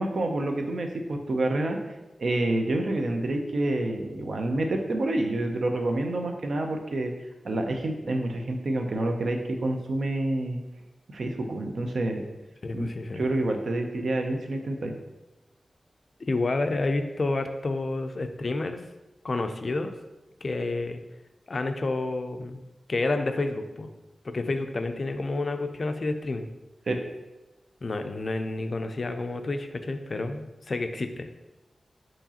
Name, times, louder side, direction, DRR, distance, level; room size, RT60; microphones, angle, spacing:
voice 1, 0.0-1.8 2.2-7.1 7.4-10.6 11.1-12.2 12.7-12.9 13.1-14.9 26.9-27.0, right 2 dB, 70° right, 4 dB, 0.5 m, -28 dB
voice 2, 12.6-13.2 16.2-18.8 19.2-19.9 20.4-21.0 21.5-22.6 22.9-23.9 24.2-26.5 27.8-31.3, left 2 dB, 50° left, 7 dB, 0.3 m, -29 dB
4.6 x 2.9 x 2.8 m, 1.0 s
wide cardioid pair, 105°, 0 cm